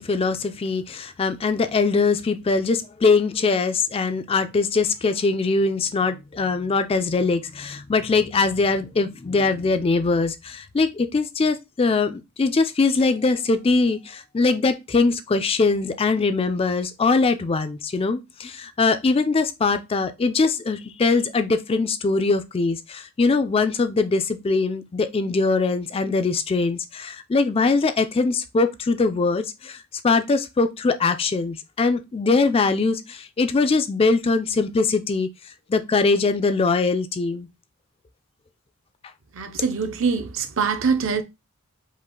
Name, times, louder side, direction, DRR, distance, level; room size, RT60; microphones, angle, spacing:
voice 1, 0.0-29.8 30.0-35.3 35.7-37.5, left 4 dB, 25° left, 0.3 m, -22 dB
voice 2, 39.3-41.2, right 5 dB, 60° right, 0.6 m, -24 dB
5.1 x 2.4 x 3.7 m
head